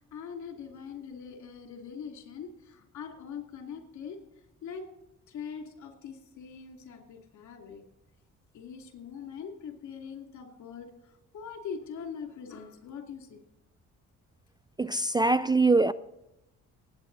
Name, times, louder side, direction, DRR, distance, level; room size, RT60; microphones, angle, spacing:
voice 1, 0.0-4.2 4.6-4.8 5.3-7.8 8.5-13.4, left 6 dB, 70° left, 2.9 m, -42 dB
voice 2, 14.8-15.9, right 3 dB, 15° right, 0.4 m, -23 dB
19.0 x 8.9 x 4.1 m
cardioid pair, 90°, 30 cm